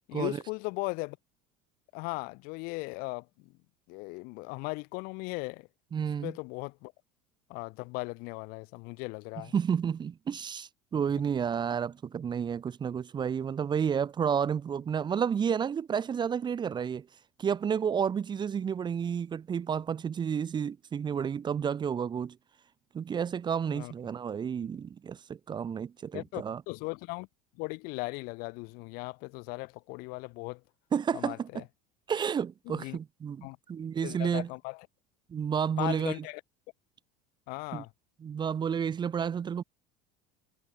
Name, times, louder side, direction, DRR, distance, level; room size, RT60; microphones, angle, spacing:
voice 1, 0.1-1.2 1.9-3.5 3.9-5.7 6.2-6.9 7.5-9.5 23.7-23.9 26.1-27.3 27.6-30.6 31.1-31.6 32.7-33.0 33.4-33.6 34.0-34.9 35.8-36.4 37.5-37.9, left 28 dB, 70° left, 3.3 m, -38 dB
voice 2, 5.9-6.3 9.5-17.1 17.4-22.4 22.9-26.6 30.9-31.6 32.1-34.5 35.3-36.1 37.7-37.8 38.2-39.6, right 7 dB, 30° right, 1.5 m, -31 dB
supercardioid pair, 120°, 16 cm